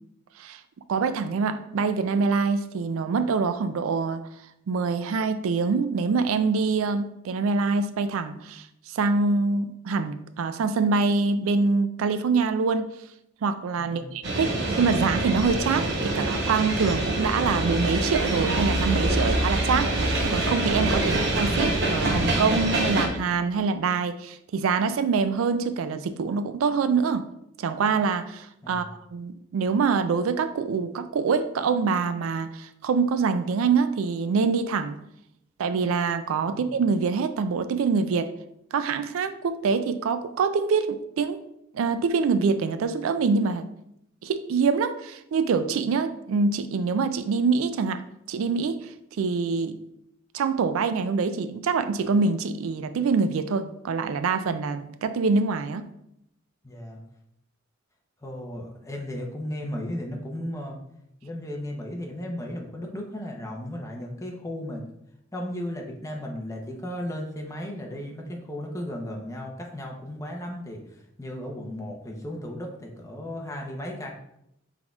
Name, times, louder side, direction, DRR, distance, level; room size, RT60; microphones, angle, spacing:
voice 1, 0.9-4.2 4.7-12.9 13.4-27.3 27.6-28.8 29.1-35.0 35.6-38.3 38.7-41.4 41.7-43.7 44.2-48.0 48.3-48.9 49.2-49.8 50.3-55.9, right 4 dB, 75° right, 11 dB, 0.3 m, -25 dB
voice 2, 13.8-14.2 28.6-28.9 36.4-36.7 56.6-57.0 58.2-60.8 61.2-64.8 65.3-74.1, left 1 dB, 15° left, 0 dB, 0.7 m, -35 dB
sound 1, 14.2-23.1, right 1 dB, 55° right, 0.8 m, -25 dB
6.0 x 3.7 x 2.3 m, 0.78 s
head